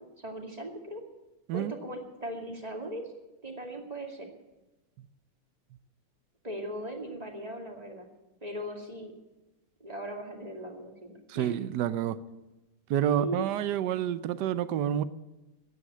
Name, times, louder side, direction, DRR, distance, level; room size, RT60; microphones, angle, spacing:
voice 1, 0.2-1.0 1.5-3.1 3.4-4.3 6.4-8.1 8.4-9.1 9.8-11.5 13.0-13.4, right 1 dB, 20° right, 1 dB, 2.2 m, -39 dB
voice 2, 11.3-12.2 12.9-15.0, right 10 dB, 65° right, 14 dB, 1.1 m, -28 dB
15.0 x 9.7 x 8.7 m, 1.0 s
omnidirectional pair, 2.4 m